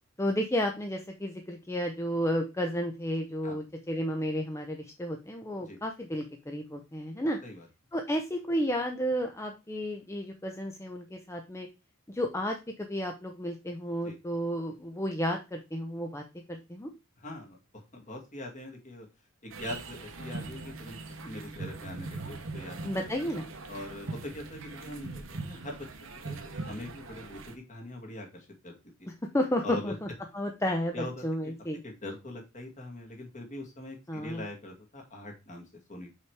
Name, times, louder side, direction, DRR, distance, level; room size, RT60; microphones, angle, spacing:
voice 1, 0.2-7.4 7.9-11.7 12.1-16.2 16.5-16.9 22.8-23.5 29.3-30.1 30.3-31.8 34.1-34.4, equal, 15° left, 3 dB, 0.6 m, -32 dB
voice 2, 17.2-17.6 17.9-19.1 19.4-22.8 23.7-25.9 26.2-29.1 29.6-29.9 30.9-31.5 31.8-36.1, left 1 dB, 35° left, 1 dB, 2.0 m, -42 dB
sound 1, 19.5-27.5, right 3 dB, 65° right, 1.0 m, -41 dB
5.7 x 4.9 x 4.7 m, 0.27 s
head